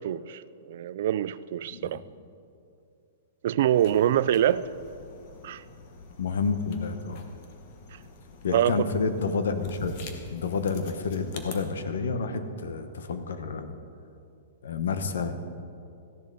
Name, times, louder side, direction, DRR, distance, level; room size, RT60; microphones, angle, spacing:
voice 1, 0.0-2.0 3.4-4.7 5.4-5.6 8.5-8.9, right 11 dB, 55° right, 17 dB, 0.3 m, -25 dB
sound 1, 3.8-11.6, left 4 dB, 45° left, 1.2 m, -45 dB
voice 2, 6.2-7.2 8.4-10.0 10.3-13.7 14.6-15.3, left 4 dB, 85° left, 9 dB, 1.0 m, -29 dB
15.0 x 10.5 x 4.0 m, 2.5 s
hypercardioid pair, 160°, 0 cm